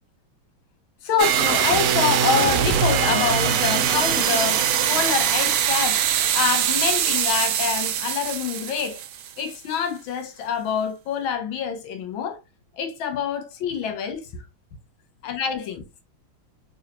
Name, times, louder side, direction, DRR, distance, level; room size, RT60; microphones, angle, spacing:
voice 1, 1.0-6.0 6.3-9.0 9.4-12.4 12.8-14.3 15.2-15.8, left 7 dB, 80° left, 1.6 m, -26 dB
sound 1, 1.2-9.5, right 9 dB, 85° right, 0.8 m, -22 dB
3.9 x 2.8 x 2.9 m
omnidirectional pair, 2.2 m